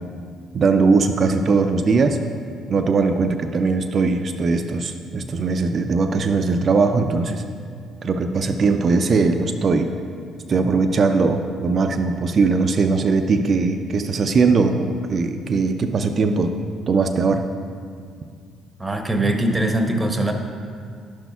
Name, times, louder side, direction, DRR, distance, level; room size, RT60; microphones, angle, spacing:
voice 1, 0.5-2.2 2.7-7.4 8.0-9.9 10.5-16.5 16.9-17.4, right 4 dB, 50° right, 6 dB, 0.4 m, -20 dB
voice 2, 18.8-20.3, right 1 dB, 15° right, 4 dB, 0.8 m, -21 dB
10.0 x 6.0 x 2.3 m, 2.2 s
supercardioid pair, 65°, 0 cm